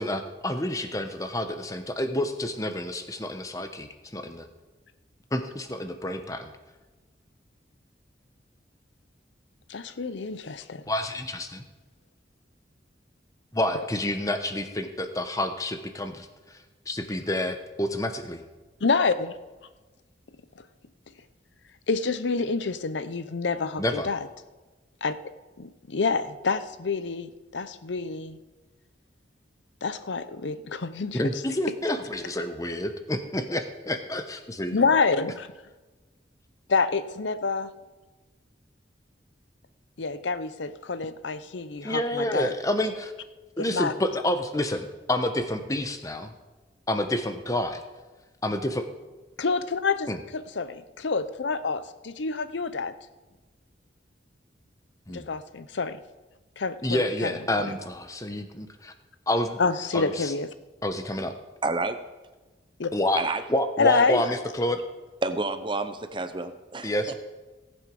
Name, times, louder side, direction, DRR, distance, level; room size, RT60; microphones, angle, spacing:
voice 1, 0.0-4.5 5.3-6.5 10.9-11.6 13.5-16.3 16.9-18.4 23.8-24.1 31.1-34.8 41.8-43.1 43.6-46.3 46.9-47.8 48.4-48.9 50.1-50.2 55.1-55.3 56.8-58.9 59.3-59.6 59.9-60.3 60.8-61.3 62.9-63.2 63.5-64.8 66.8-67.1, left 1 dB, 20° left, 7 dB, 0.9 m, -28 dB
voice 2, 9.7-10.8 13.7-13.9 18.8-19.3 21.9-24.3 25.0-25.1 25.6-28.4 29.8-31.2 34.7-35.5 36.7-37.7 40.0-42.5 43.6-43.9 49.4-52.9 55.1-56.0 56.6-57.4 59.6-60.5 62.8-62.9 63.8-64.2, left 4 dB, 85° left, 13 dB, 0.7 m, -27 dB
voice 3, 61.6-62.0 63.2-63.4 65.2-67.1, right 3 dB, 25° right, 10 dB, 0.8 m, -29 dB
17.5 x 8.0 x 5.3 m, 1.2 s
head